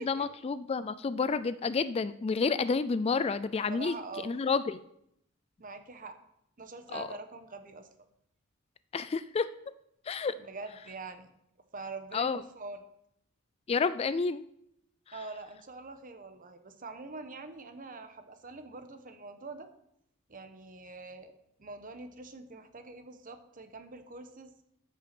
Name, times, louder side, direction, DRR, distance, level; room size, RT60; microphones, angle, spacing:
voice 1, 0.0-4.0 4.2-4.8 6.9-7.1 8.9-9.5 10.1-10.3 12.1-12.4 13.7-14.4 15.1-15.2, left 4 dB, 30° left, 14 dB, 0.3 m, -30 dB
voice 2, 3.7-4.3 5.6-6.2 6.6-7.9 10.4-11.3 11.7-12.8 15.1-19.7 20.3-21.3 21.6-24.5, right 3 dB, 40° right, 8 dB, 1.1 m, -44 dB
13.5 x 6.0 x 6.0 m, 0.76 s
head